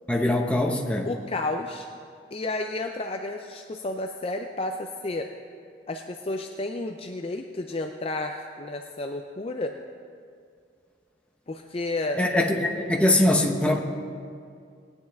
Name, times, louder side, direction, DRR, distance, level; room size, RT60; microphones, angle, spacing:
voice 1, 0.1-1.1 12.2-13.8, left 1 dB, 5° left, 1 dB, 0.9 m, -22 dB
voice 2, 1.1-1.9 2.3-5.3 5.9-9.8 11.5-12.2, left 2 dB, 30° left, 4 dB, 0.5 m, -31 dB
19.0 x 9.7 x 3.5 m, 2.3 s
head